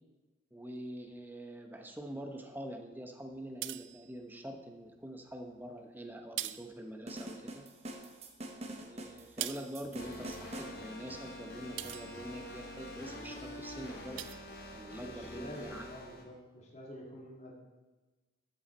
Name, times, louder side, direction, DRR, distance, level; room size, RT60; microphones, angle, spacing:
voice 1, 0.5-7.6 8.8-14.3 14.7-15.9, right 1 dB, 10° right, 3 dB, 0.9 m, -45 dB
sound 1, 3.3-4.6 5.3-5.8 6.1-7.6 7.9-12.8 13.3-13.6 13.9-15.3, right 15 dB, 75° right, 0.4 m, -45 dB
sound 2, 7.1-10.8, right 1 dB, 35° right, 1.0 m, -45 dB
sound 3, 10.0-16.2, left 1 dB, 50° left, 1.8 m, -46 dB
voice 2, 15.0-17.6, equal, 35° left, -3 dB, 1.9 m, -48 dB
13.0 x 8.1 x 4.3 m, 1.2 s
head